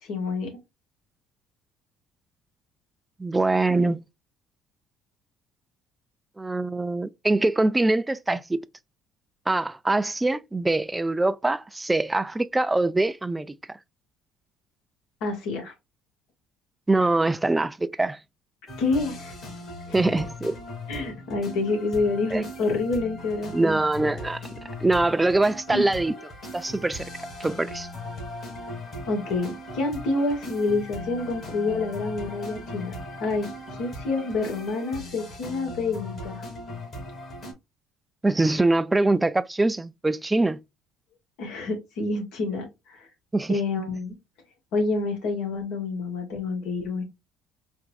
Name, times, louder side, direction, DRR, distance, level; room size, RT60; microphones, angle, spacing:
voice 1, 0.0-0.5 15.2-15.7 18.8-19.3 19.9-20.2 20.9-23.8 25.7-25.9 29.1-33.5 33.8-36.4 41.4-43.1 43.5-44.2 44.7-47.0, left 3 dB, 75° left, 1.7 m, -28 dB
voice 2, 3.2-4.0 6.4-8.6 9.5-13.8 16.9-18.2 19.9-20.6 22.3-22.4 23.5-24.4 24.8-26.1 26.5-27.1 27.4-27.9 38.2-40.6 43.3-43.6, right 2 dB, 15° right, 0.3 m, -23 dB
sound 1, 18.7-37.5, left 1 dB, 45° left, 2.3 m, -39 dB
4.5 x 2.5 x 2.4 m
cardioid pair, 100°, 0 cm